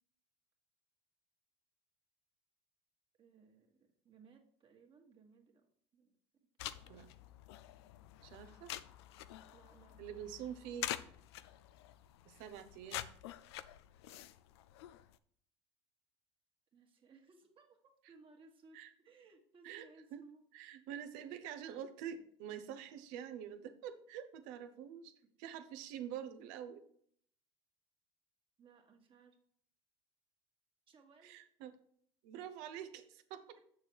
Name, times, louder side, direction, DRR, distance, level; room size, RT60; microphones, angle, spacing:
voice 1, 3.2-6.1 6.7-7.0 9.5-10.3 16.7-20.5 28.6-29.4 30.9-31.4, right 4 dB, 40° right, 2 dB, 1.8 m, -63 dB
sound 1, 6.6-15.2, left 13 dB, 85° left, 0.5 m, -47 dB
voice 2, 8.2-8.7 10.0-11.0 12.3-13.1 18.7-18.9 19.6-20.2 20.5-25.1 25.4-26.8 31.2-31.7 32.2-33.6, right 9 dB, 70° right, 10 dB, 1.0 m, -46 dB
7.0 x 6.5 x 4.7 m, 0.62 s
supercardioid pair, 85°, 13 cm